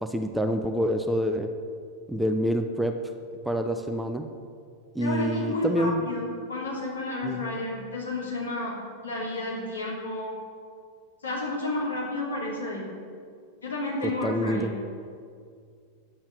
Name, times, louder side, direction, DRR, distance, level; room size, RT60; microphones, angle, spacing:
voice 1, 0.0-1.5 2.1-3.0 3.4-4.3 4.9-6.0 7.2-7.6 14.0-14.7, equal, 5° right, 5 dB, 0.6 m, -27 dB
voice 2, 5.0-8.8 9.0-10.3 11.2-12.9 13.6-14.7, left 2 dB, 70° left, -4 dB, 2.9 m, -31 dB
9.6 x 7.3 x 6.2 m, 2.2 s
figure-of-eight pair, 90°, 0 cm